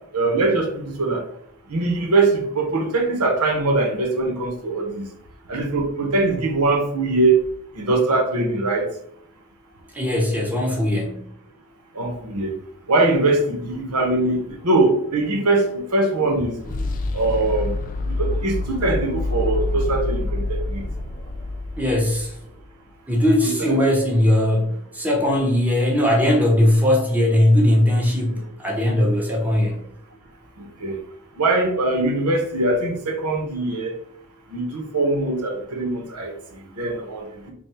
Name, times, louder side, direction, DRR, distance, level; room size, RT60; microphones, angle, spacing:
voice 1, 0.1-1.2 1.7-5.0 5.5-7.3 7.8-8.9 11.9-12.5 12.9-16.6 17.1-17.7 18.0-20.8 23.6-23.7 30.8-31.0 31.4-33.9 34.5-36.3 36.8-37.5, right 2 dB, 85° right, 2 dB, 1.0 m, -22 dB
voice 2, 9.9-11.3 21.8-22.4 23.1-29.8, left 1 dB, 5° right, -2 dB, 0.9 m, -19 dB
sound 1, 14.5-22.6, left 2 dB, 35° left, 0.4 m, -28 dB
3.6 x 2.4 x 4.2 m, 0.69 s
head